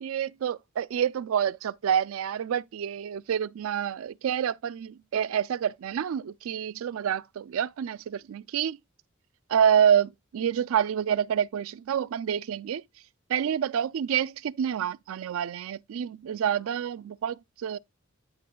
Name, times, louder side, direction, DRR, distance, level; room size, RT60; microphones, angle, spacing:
voice 1, 0.0-8.8 9.5-12.8 13.3-17.8, right 8 dB, 75° right, 0.3 m, -27 dB
9.4 x 3.7 x 3.8 m
head